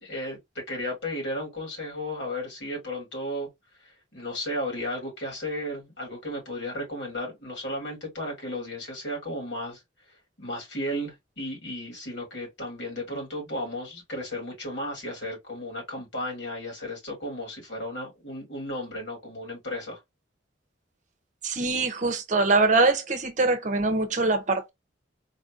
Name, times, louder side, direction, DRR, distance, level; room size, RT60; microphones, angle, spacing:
voice 1, 0.0-3.5 4.1-9.8 10.4-20.0, left 1 dB, 70° left, 2.6 m, -34 dB
voice 2, 21.4-24.7, right 3 dB, 40° right, 0.7 m, -23 dB
4.1 x 2.6 x 2.5 m
head